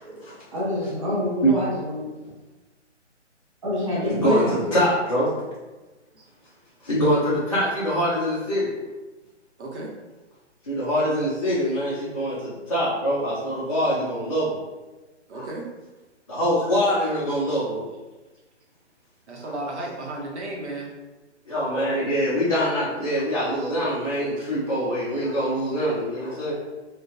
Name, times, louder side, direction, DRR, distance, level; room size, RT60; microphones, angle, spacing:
voice 1, 0.5-2.1 3.6-4.7, left 1 dB, 30° right, -7 dB, 0.6 m, -27 dB
voice 2, 4.1-5.3 6.8-8.7 10.6-14.6 15.3-15.5 16.3-17.9 19.4-19.6 21.5-26.6, equal, 30° left, -10 dB, 0.4 m, -24 dB
voice 3, 15.3-15.7 19.3-20.9 21.8-22.1, right 2 dB, 70° right, -1 dB, 0.7 m, -34 dB
2.4 x 2.2 x 2.5 m, 1.2 s
figure-of-eight pair, 145°, 36 cm